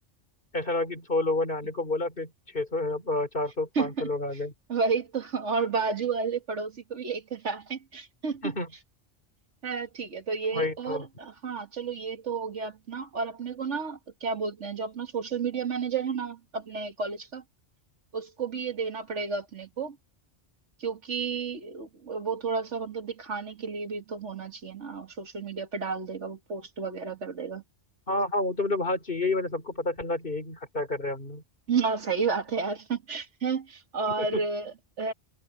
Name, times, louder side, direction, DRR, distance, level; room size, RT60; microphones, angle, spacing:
voice 1, 0.5-4.5 8.4-8.7 10.5-11.1 28.1-31.4 34.2-34.4, left 2 dB, 50° left, 3.9 m, -29 dB
voice 2, 3.8-4.1 4.7-8.4 9.6-17.4 18.1-20.0 20.8-27.6 31.7-35.1, right 5 dB, 80° right, 2.0 m, -31 dB
omnidirectional pair, 1.2 m